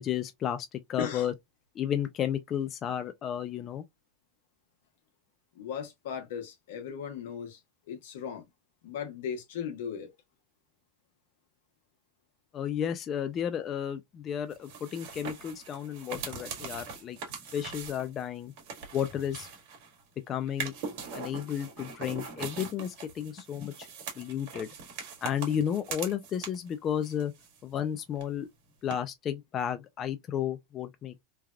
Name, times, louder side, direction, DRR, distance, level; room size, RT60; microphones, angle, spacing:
voice 1, 0.0-1.3 1.8-3.8 12.5-17.2 17.5-18.5 18.9-19.5 20.3-20.7 21.1-23.9 24.2-24.7 25.2-27.3 27.6-28.5 28.8-31.2, left 9 dB, 35° left, 0.4 m, -32 dB
voice 2, 5.5-7.6 7.9-8.5 8.8-10.1, left 7 dB, 80° left, 1.0 m, -37 dB
sound 1, 14.5-20.0 20.5-26.7 27.0-27.9 28.1-28.2 28.9-29.0, right 5 dB, 70° right, 1.5 m, -41 dB
3.3 x 2.3 x 2.2 m
supercardioid pair, 130°, 0 cm